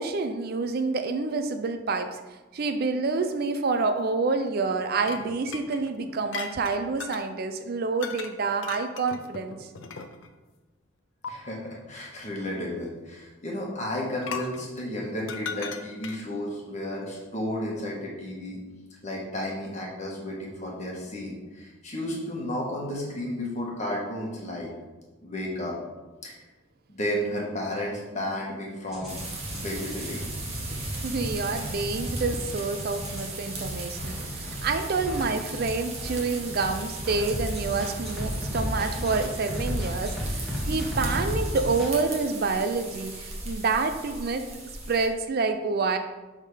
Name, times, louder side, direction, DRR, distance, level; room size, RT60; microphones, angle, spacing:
voice 1, 0.0-2.2 2.5-9.7 31.0-44.5 44.9-46.0, right 4 dB, 45° right, 8 dB, 0.4 m, -28 dB
sound 1, 5.0-7.3 8.0-8.3 8.6-10.3 11.2-11.3 14.2-16.3, left 6 dB, 65° left, 0.5 m, -38 dB
voice 2, 11.3-18.6 19.0-24.7 25.2-25.7 26.2-26.4 26.9-29.2 29.5-30.2, left 1 dB, 35° left, -3 dB, 1.4 m, -33 dB
sound 2, 28.9-41.9, equal, ahead, 1.6 m, -34 dB
sound 3, 29.1-45.1, right 2 dB, 30° right, 1.2 m, -37 dB
6.5 x 3.7 x 4.9 m, 1.2 s
head